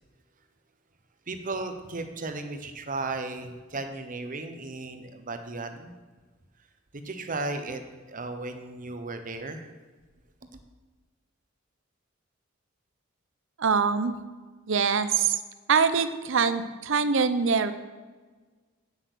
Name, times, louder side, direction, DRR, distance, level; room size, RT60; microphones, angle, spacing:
voice 1, 1.3-5.9 6.9-7.8 8.1-9.7, right 3 dB, 40° right, 7 dB, 1.0 m, -35 dB
voice 2, 13.6-14.2 14.7-15.3 15.7-17.7, right 5 dB, 65° right, 12 dB, 0.7 m, -23 dB
8.8 x 7.9 x 6.3 m, 1.3 s
head